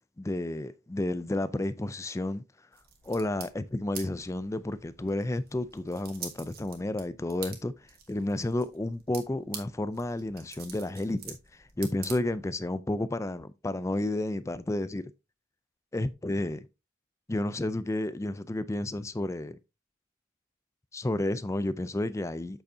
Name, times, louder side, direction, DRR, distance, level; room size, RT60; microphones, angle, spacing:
voice 1, 0.2-2.4 3.0-7.7 8.1-15.1 15.9-16.7 17.3-19.6 20.9-22.6, left 1 dB, 15° left, 0.4 m, -31 dB
sound 1, 2.7-12.7, right 7 dB, 50° right, 1.6 m, -47 dB
7.9 x 6.8 x 2.7 m
head